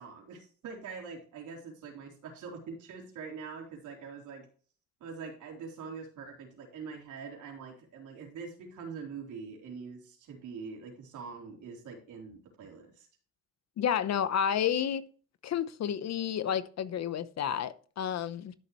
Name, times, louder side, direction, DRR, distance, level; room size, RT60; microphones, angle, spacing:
voice 1, 0.0-4.5 5.0-13.1, right 5 dB, 80° right, 3.9 m, -44 dB
voice 2, 13.8-15.0 15.4-18.5, left 9 dB, 60° left, 0.9 m, -30 dB
12.5 x 6.8 x 3.2 m
cardioid pair, 90°, 30 cm